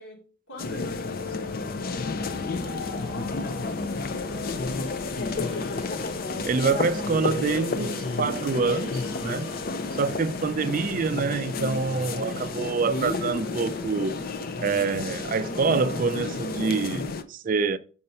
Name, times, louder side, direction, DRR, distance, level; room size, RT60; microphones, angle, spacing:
voice 1, 0.0-6.1 9.0-9.5, equal, 75° left, 2.9 m, -46 dB
Microwave oven, 0.5-16.8, equal, ahead, 0.7 m, -46 dB
sound 1, 0.6-17.2, left 4 dB, 45° left, 0.5 m, -31 dB
sound 2, 2.6-17.2, right 1 dB, 25° left, 1.4 m, -46 dB
voice 2, 6.4-9.5 9.9-14.2 14.6-17.8, right 4 dB, 40° right, 0.4 m, -26 dB
5.5 x 5.3 x 5.5 m
head